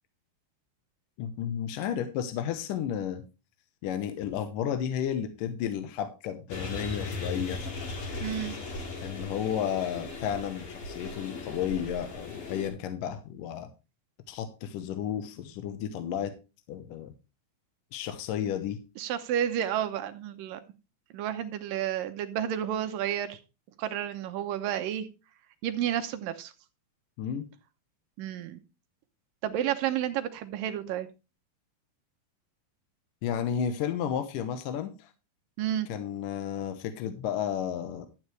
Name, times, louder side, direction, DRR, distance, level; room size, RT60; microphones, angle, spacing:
voice 1, 1.2-3.2 3.8-7.6 9.0-13.7 14.3-16.3 16.7-17.1 17.9-18.8 27.2-27.5 33.2-35.1 35.9-38.1, left 9 dB, 70° left, 9 dB, 2.3 m, -32 dB
sound 1, 6.5-12.7, left 3 dB, 45° left, 2.5 m, -37 dB
voice 2, 8.2-8.6 19.0-20.6 21.1-23.4 23.8-25.1 25.6-26.5 28.2-28.6 29.4-31.1 35.6-35.9, right 10 dB, 75° right, 9 dB, 2.2 m, -31 dB
12.5 x 8.7 x 3.2 m, 0.29 s
omnidirectional pair, 4.5 m